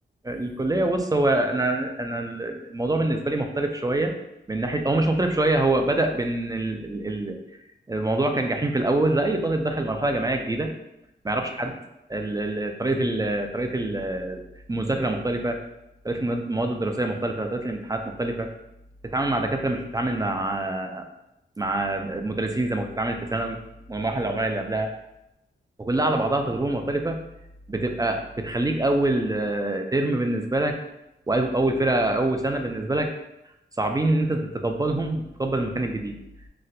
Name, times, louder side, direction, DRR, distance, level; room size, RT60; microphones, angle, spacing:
voice 1, 0.2-4.1 4.5-7.4 7.9-10.7 11.2-11.8 12.1-14.4 14.7-15.6 16.0-18.5 19.0-21.0 21.6-23.6 23.9-24.9 25.8-27.2 27.7-30.8 31.3-33.1 33.8-36.2, right 2 dB, 20° right, 4 dB, 0.3 m, -25 dB
4.0 x 2.1 x 2.6 m, 0.87 s
wide cardioid pair, 80°, 20 cm